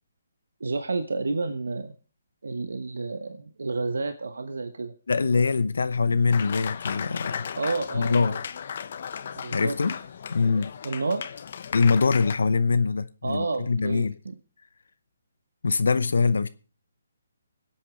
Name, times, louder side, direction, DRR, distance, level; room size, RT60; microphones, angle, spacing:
voice 1, 0.6-1.9 2.4-4.9 7.6-8.4 9.3-9.8 10.8-11.2 13.2-14.3, right 3 dB, 80° right, 1.2 m, -30 dB
voice 2, 5.1-7.5 7.9-8.4 9.5-10.0 10.3-10.7 11.7-14.2 15.6-16.5, left 4 dB, 75° left, 0.7 m, -23 dB
Applause, 6.3-12.4, left 7 dB, 55° left, 1.1 m, -35 dB
25.5 x 8.7 x 3.2 m
hypercardioid pair, 150°, 0 cm